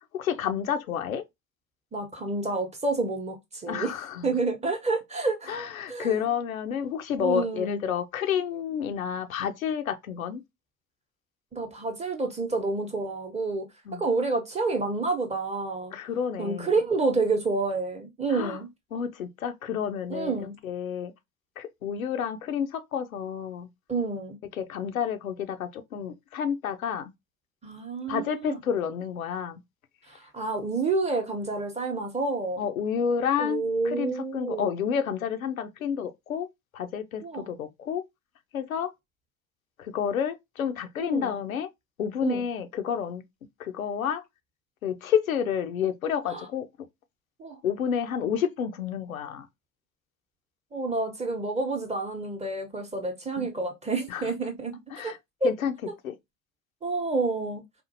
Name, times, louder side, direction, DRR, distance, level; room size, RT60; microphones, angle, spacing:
voice 1, 0.1-1.2 3.7-4.3 5.5-10.4 13.9-14.0 15.9-16.7 18.3-18.6 18.9-21.1 21.6-23.7 24.5-27.1 28.1-29.6 32.6-36.5 36.7-38.0 38.5-38.9 39.8-41.7 42.0-43.2 43.6-44.2 44.8-46.7 47.6-49.5 53.4-53.5 54.1-54.3 54.9-55.2 55.4-55.7 56.0-56.2, left 8 dB, 80° left, 0.6 m, -30 dB
voice 2, 1.9-3.9 4.2-5.5 5.9-6.2 7.2-7.8 11.5-13.7 14.0-15.9 16.4-18.7 20.1-20.5 23.9-24.4 27.6-28.6 30.1-32.6 33.4-34.7 37.2-37.5 41.0-41.4 42.2-42.5 46.3-46.4 47.4-47.6 50.7-55.1 55.4-55.5 56.8-57.6, right 3 dB, 15° right, 0.9 m, -29 dB
4.2 x 2.4 x 2.7 m
figure-of-eight pair, 70°, 41 cm